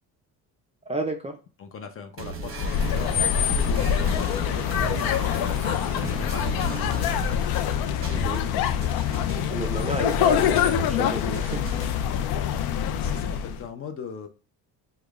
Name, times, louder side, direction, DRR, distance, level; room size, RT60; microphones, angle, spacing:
voice 1, 0.9-1.4 8.1-8.9 9.5-11.9, right 3 dB, 20° right, 2 dB, 0.4 m, -33 dB
voice 2, 1.6-5.0 5.9-7.1 12.9-14.3, left 6 dB, 35° left, 6 dB, 0.6 m, -39 dB
sound 1, 2.2-12.2, right 4 dB, 35° right, 0.9 m, -37 dB
sound 2, 2.5-13.6, left 9 dB, 75° left, 0.5 m, -25 dB
4.8 x 2.3 x 2.4 m, 0.33 s
cardioid pair, 100°, 38 cm